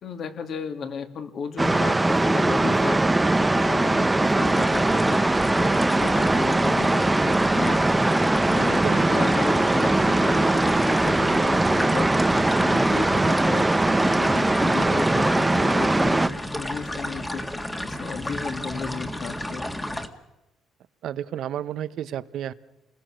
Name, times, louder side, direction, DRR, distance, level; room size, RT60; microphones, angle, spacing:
voice 1, 0.0-5.2 5.6-7.8 8.5-8.8 9.1-12.1 12.5-13.8 14.0-16.3 16.5-17.4 17.8-19.7, left 5 dB, 50° left, 6 dB, 2.6 m, -34 dB
sound 1, 1.6-16.3, right 2 dB, 10° right, 0.9 m, -21 dB
sound 2, 4.4-20.1, left 1 dB, 10° left, 1.9 m, -32 dB
voice 2, 21.0-22.5, right 10 dB, 65° right, 14 dB, 1.0 m, -31 dB
29.0 x 21.0 x 6.5 m, 0.96 s
cardioid pair, 120°, 0 cm